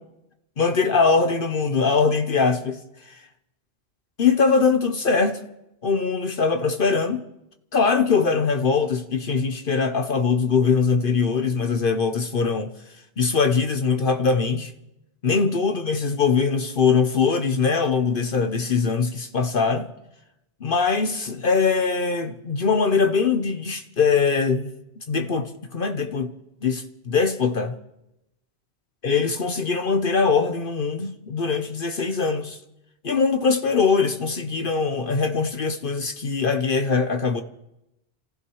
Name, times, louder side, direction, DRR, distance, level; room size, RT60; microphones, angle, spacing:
voice 1, 0.6-2.8 4.2-5.4 5.8-7.2 7.7-12.7 13.2-14.7 15.2-19.9 20.6-24.7 25.1-26.3 26.6-27.7 29.0-32.6 33.0-37.4, left 5 dB, 55° left, 1.0 m, -22 dB
29.0 x 15.0 x 3.1 m
omnidirectional pair, 1.1 m